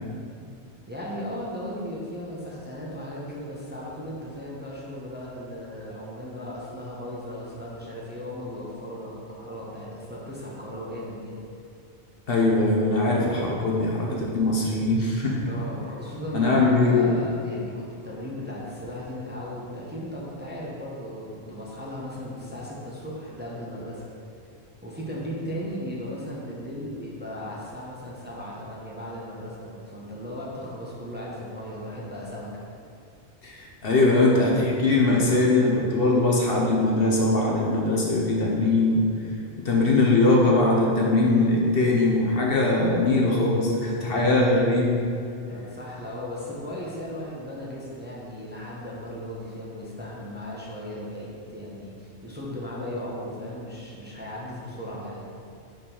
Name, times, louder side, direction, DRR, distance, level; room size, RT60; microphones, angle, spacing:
voice 1, 0.9-11.3 15.3-24.0 24.8-32.6 45.5-55.3, equal, 10° right, -5 dB, 1.0 m, -36 dB
voice 2, 12.3-15.5 16.3-17.1 33.4-39.0 39.6-45.0, left 2 dB, 60° left, -2 dB, 1.2 m, -21 dB
5.4 x 5.2 x 5.5 m, 2.5 s
omnidirectional pair, 1.1 m